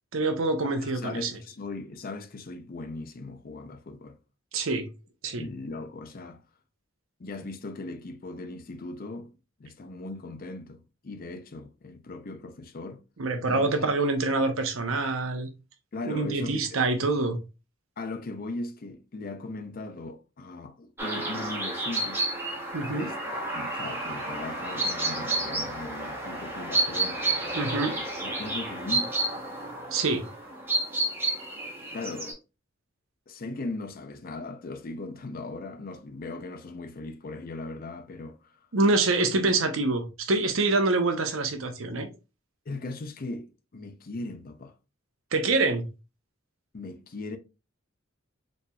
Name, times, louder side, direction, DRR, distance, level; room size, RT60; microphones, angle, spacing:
voice 1, 0.1-1.3 4.5-4.9 5.2-5.4 13.2-15.5 16.0-17.4 22.7-23.1 27.5-28.0 29.9-30.2 38.7-42.1 45.3-45.9, right 3 dB, 75° right, 0.8 m, -26 dB
voice 2, 0.8-4.2 5.4-6.4 7.2-9.3 9.6-13.0 13.5-13.9 15.9-16.8 18.0-22.2 22.9-27.3 28.2-29.1 31.9-32.4 33.3-38.4 42.7-44.7 46.7-47.4, left 2 dB, 45° left, 0.5 m, -38 dB
sound 1, 21.0-32.3, right 2 dB, 10° right, 0.9 m, -31 dB
4.1 x 3.2 x 2.3 m
head